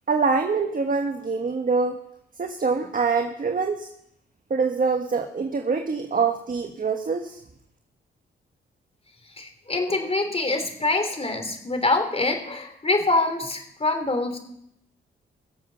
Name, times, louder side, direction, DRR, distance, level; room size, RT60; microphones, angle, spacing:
voice 1, 0.1-2.0 2.4-3.9 4.5-7.4, right 4 dB, 40° right, 5 dB, 1.4 m, -24 dB
voice 2, 9.4-14.4, left 2 dB, 30° left, 6 dB, 3.3 m, -25 dB
21.5 x 7.6 x 5.8 m, 0.76 s
cardioid pair, 65°, 21 cm